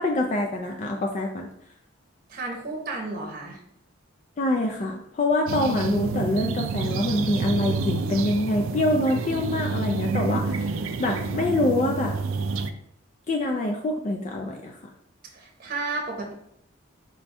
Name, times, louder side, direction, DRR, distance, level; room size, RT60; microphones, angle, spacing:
voice 1, 0.0-1.5 4.4-10.7 11.0-12.1 13.3-14.8, left 2 dB, 35° left, 2 dB, 0.3 m, -25 dB
voice 2, 2.3-3.6 15.3-16.3, right 3 dB, 45° right, 0 dB, 0.8 m, -32 dB
sound 1, 5.5-12.7, right 4 dB, 75° right, 0.3 m, -28 dB
4.3 x 2.3 x 4.1 m, 0.72 s
head